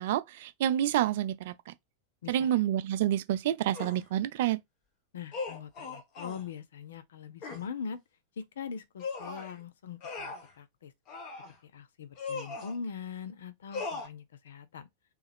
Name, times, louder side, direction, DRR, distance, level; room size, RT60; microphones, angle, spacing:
voice 1, 0.0-1.7 2.3-4.6, right 12 dB, 55° right, 0.4 m, -28 dB
sound 1, 3.7-4.0 5.3-6.4 7.4-7.7 9.0-9.5 10.0-10.5 11.1-11.5 12.2-12.8 13.7-14.1, left 4 dB, 40° left, 1.3 m, -38 dB
voice 2, 5.1-8.0 8.4-10.9 11.6-14.9, left 6 dB, 60° left, 0.5 m, -42 dB
3.2 x 3.1 x 3.4 m
figure-of-eight pair, 90°, 0 cm